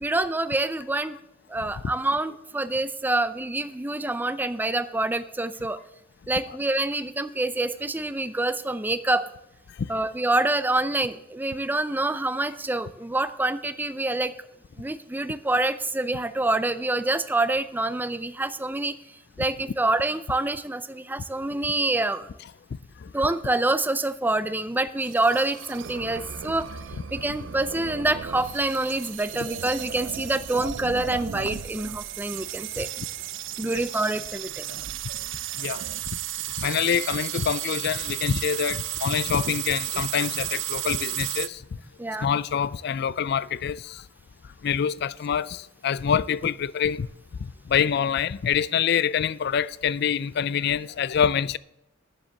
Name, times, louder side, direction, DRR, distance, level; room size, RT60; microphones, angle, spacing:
voice 1, 0.0-1.2 1.5-5.8 6.3-9.2 9.9-14.3 14.8-18.9 19.4-22.3 23.1-26.7 27.1-32.9 33.6-34.6 42.0-42.3, right 2 dB, 10° right, 0.5 m, -26 dB
sound 1, 25.0-41.5, right 11 dB, 75° right, 0.5 m, -34 dB
voice 2, 36.6-41.6 42.2-44.0 44.6-47.1 47.4-51.6, left 8 dB, 60° left, 0.4 m, -26 dB
10.0 x 7.3 x 6.5 m
head